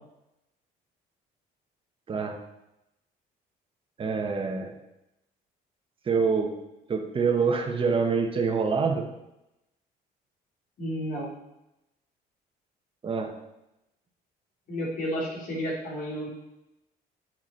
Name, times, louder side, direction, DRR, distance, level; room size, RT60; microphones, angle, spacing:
voice 1, 4.0-4.7 6.1-6.5 6.9-9.0 13.0-13.3, right 5 dB, 30° right, 3 dB, 1.2 m, -26 dB
voice 2, 10.8-11.3 14.7-16.3, equal, 55° left, -4 dB, 3.4 m, -31 dB
8.7 x 5.9 x 4.5 m, 0.90 s
cardioid pair, 110°, 17 cm